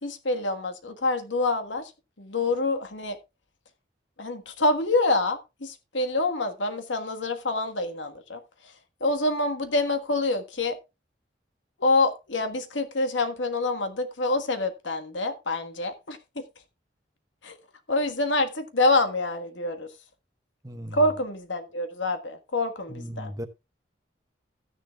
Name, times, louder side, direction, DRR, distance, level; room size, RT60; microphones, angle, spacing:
voice 1, 0.0-1.9 2.2-3.2 4.2-8.4 9.0-10.8 11.8-16.4 17.4-17.6 17.9-19.9 20.9-23.3, left 2 dB, 85° left, 1.5 m, -26 dB
voice 2, 20.6-21.0 22.9-23.5, equal, 20° right, 1.0 m, -36 dB
13.5 x 10.0 x 2.3 m
head